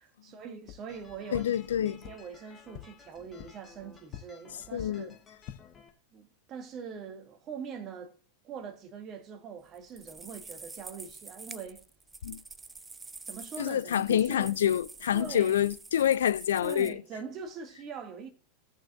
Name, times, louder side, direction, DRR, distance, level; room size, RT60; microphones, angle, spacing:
voice 1, 0.0-1.5 1.8-5.2 6.1-8.2 8.4-11.8 13.2-14.5 15.1-15.5 16.6-18.3, right 6 dB, 30° right, 1.2 m, -43 dB
sound 1, 0.6-0.8 1.3-1.4 2.0-2.1 2.7-2.8 3.4-3.5 4.1-4.2 4.7-4.9 5.3-5.6, left 12 dB, 40° left, 1.0 m, -42 dB
sound 2, 0.9-5.9, left 6 dB, 20° left, 1.4 m, -56 dB
voice 2, 1.3-2.0 4.7-5.1 12.2-12.4 13.6-17.0, left 10 dB, 65° left, 0.3 m, -27 dB
sound 3, 9.8-16.9, right 3 dB, 10° right, 0.4 m, -47 dB
17.5 x 6.5 x 2.4 m
figure-of-eight pair, 90°, 0 cm